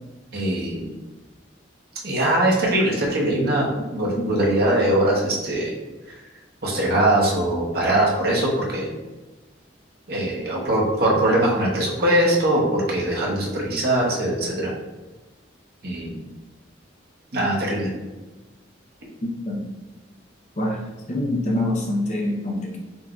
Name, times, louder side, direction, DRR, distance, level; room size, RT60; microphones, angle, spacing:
voice 1, 0.3-0.9 2.0-5.7 6.6-8.9 10.1-14.7 15.8-16.2 17.3-17.9, right 1 dB, 55° right, -3 dB, 0.9 m, -21 dB
voice 2, 19.2-19.6 20.6-20.8 21.1-22.8, left 1 dB, 35° left, -1 dB, 0.6 m, -25 dB
5.4 x 2.6 x 2.3 m, 1.2 s
head